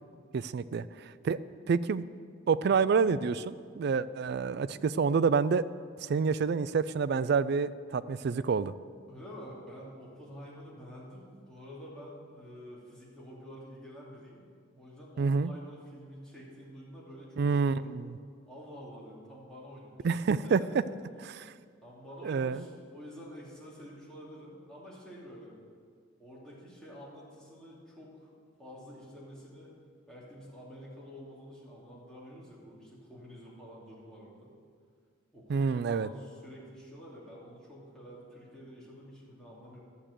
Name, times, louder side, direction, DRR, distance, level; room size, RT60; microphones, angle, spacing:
voice 1, 0.3-1.4 1.7-2.1 2.5-5.6 6.0-8.7 15.2-15.5 17.4-18.0 20.0-20.6 21.2-21.4 22.2-22.6 35.5-36.1, right 5 dB, 50° right, 15 dB, 0.3 m, -28 dB
voice 2, 9.1-14.4 14.8-17.9 18.5-20.1 20.4-20.8 21.8-25.5 26.2-28.3 28.6-29.7 30.1-34.5 35.3-39.8, equal, 5° left, -7 dB, 2.6 m, -48 dB
12.0 x 7.4 x 6.8 m, 2.1 s
head